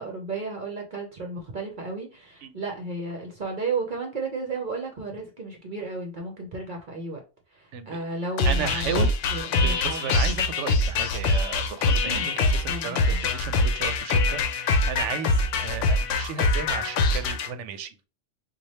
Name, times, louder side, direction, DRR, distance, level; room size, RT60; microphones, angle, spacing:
voice 1, 0.0-7.2 7.5-10.3 12.1-12.3 12.7-13.2, right 3 dB, 50° right, 0.7 m, -33 dB
sound 1, 8.4-17.5, left 2 dB, 80° left, 0.9 m, -24 dB
voice 2, 8.4-9.1 9.6-17.9, right 7 dB, 75° right, 0.9 m, -34 dB
3.2 x 2.3 x 4.1 m
omnidirectional pair, 1.3 m